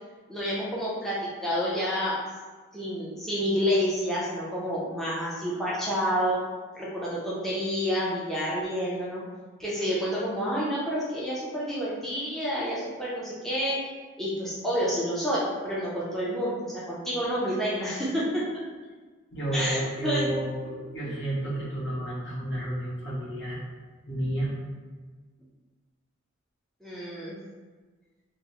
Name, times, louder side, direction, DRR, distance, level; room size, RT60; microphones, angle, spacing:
voice 1, 0.3-2.2 2.7-6.4 6.7-9.2 9.6-13.8 14.2-18.4 19.5-20.4 26.8-27.4, equal, ahead, -8 dB, 0.4 m, -29 dB
voice 2, 19.3-23.6 24.1-24.5, right 1 dB, 60° left, -7 dB, 0.9 m, -31 dB
3.4 x 2.0 x 2.8 m, 1.4 s
head